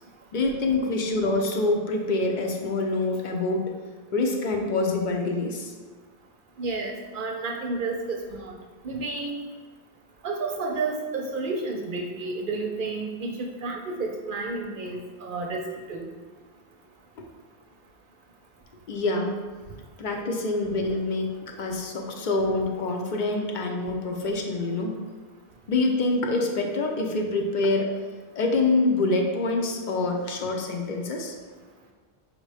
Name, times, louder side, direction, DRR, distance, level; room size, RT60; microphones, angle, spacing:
voice 1, 0.3-3.6 4.1-5.7 17.2-17.3 18.9-19.4 20.0-25.0 25.7-27.9 28.3-31.3, left 2 dB, 55° left, 2 dB, 0.7 m, -26 dB
voice 2, 6.6-8.6 8.8-9.4 10.2-15.6 15.9-16.1, right 3 dB, 60° right, 1 dB, 0.6 m, -31 dB
5.0 x 2.1 x 4.8 m, 1.4 s
omnidirectional pair, 1.1 m